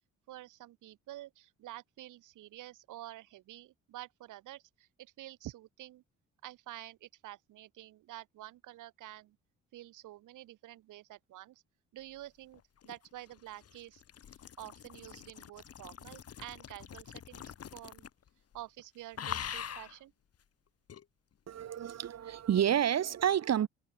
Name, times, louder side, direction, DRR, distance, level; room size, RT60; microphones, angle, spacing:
voice 1, 0.3-6.0 6.4-9.4 9.7-11.6 11.9-14.0 14.6-18.1 18.5-20.1, right 15 dB, 85° right, 3.9 m, -49 dB
sound 1, 12.5-18.3 18.5-18.8 19.1-20.0 20.9-21.0, left 9 dB, 50° left, 2.2 m, -44 dB
voice 2, 21.5-23.7, right 10 dB, 60° right, 1.9 m, -29 dB
cardioid pair, 90°, 30 cm